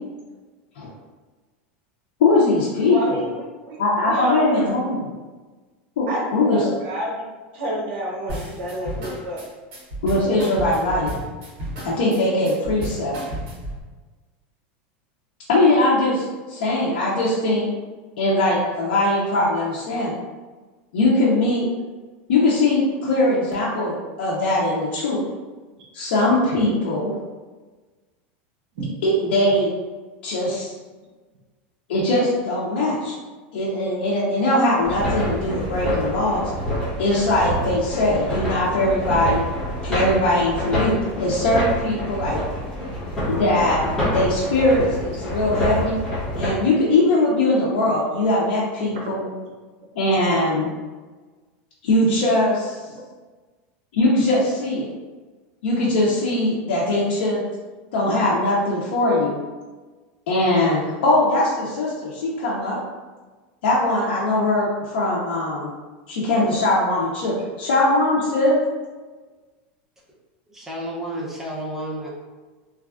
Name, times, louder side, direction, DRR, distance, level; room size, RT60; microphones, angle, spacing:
voice 1, 2.2-3.2 3.8-5.1 6.0-6.6 10.0-11.1 11.8-13.2 15.5-17.7 18.2-20.1 20.9-21.7 22.3-25.2 25.9-27.1 29.0-29.7 30.2-30.7 31.9-33.1 33.5-36.5 37.0-39.4 39.8-42.4 43.3-46.0 46.4-49.3 50.0-50.7 51.8-52.8 53.9-54.9 55.6-57.4 57.9-59.4 60.3-62.8 63.6-65.7 66.1-68.6, left 2 dB, 90° left, -5 dB, 0.6 m, -21 dB
voice 2, 2.9-4.5 6.1-7.2 7.5-9.4 28.7-28.9 49.0-49.1 52.9-53.0, equal, 70° right, -3 dB, 0.7 m, -29 dB
sound 1, 8.3-13.8, equal, 45° right, 1.2 m, -32 dB
sound 2, 34.8-46.5, equal, 10° left, 0.9 m, -27 dB
voice 3, 70.5-72.1, right 1 dB, 5° right, -4 dB, 0.5 m, -31 dB
3.1 x 2.4 x 2.4 m, 1.3 s
supercardioid pair, 165°, 6 cm